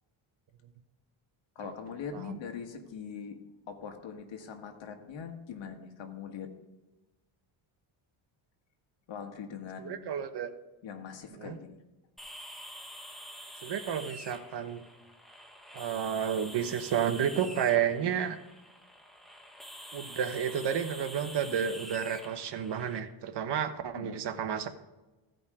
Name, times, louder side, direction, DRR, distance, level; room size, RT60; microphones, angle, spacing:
voice 1, 1.5-3.4 3.7-6.5 9.1-10.1 10.8-11.8 23.9-24.2, left 7 dB, 65° left, 5 dB, 1.6 m, -42 dB
voice 2, 9.8-10.5 11.4-11.6 13.6-14.8 15.7-18.4 19.9-24.7, right 8 dB, 55° right, 9 dB, 1.1 m, -31 dB
sound 1, 12.2-23.0, equal, ahead, 1.3 m, -47 dB
15.5 x 5.3 x 3.6 m, 1.1 s
cardioid pair, 100°, 48 cm